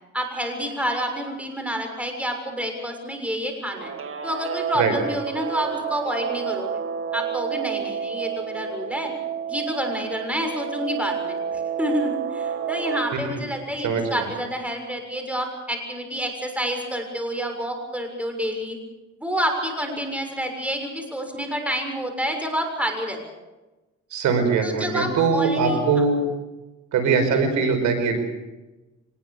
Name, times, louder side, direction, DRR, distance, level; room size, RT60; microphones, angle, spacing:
voice 1, 0.1-3.9 4.2-6.8 7.1-9.1 9.5-18.8 19.2-23.2 24.6-26.0 27.3-27.5, equal, 5° right, 4 dB, 6.7 m, -28 dB
Guitar, 3.7-13.1, right 8 dB, 45° right, 1.6 m, -30 dB
voice 2, 13.8-14.3 24.1-26.2 26.9-28.2, right 5 dB, 80° right, 6 dB, 5.0 m, -21 dB
24.0 x 21.0 x 6.7 m, 1.1 s
cardioid pair, 90°, 30 cm